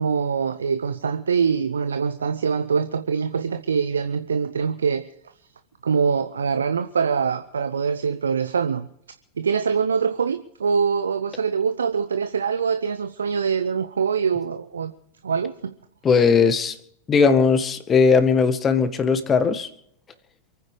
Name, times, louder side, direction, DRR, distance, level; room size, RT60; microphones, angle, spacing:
voice 1, 0.0-5.1 5.8-8.9 9.4-14.9 15.2-15.7, right 6 dB, 70° right, 0.9 m, -24 dB
voice 2, 16.0-16.8 17.1-19.7, left 5 dB, 20° left, 1.9 m, -18 dB
27.5 x 9.8 x 5.2 m
figure-of-eight pair, 90°, 0 cm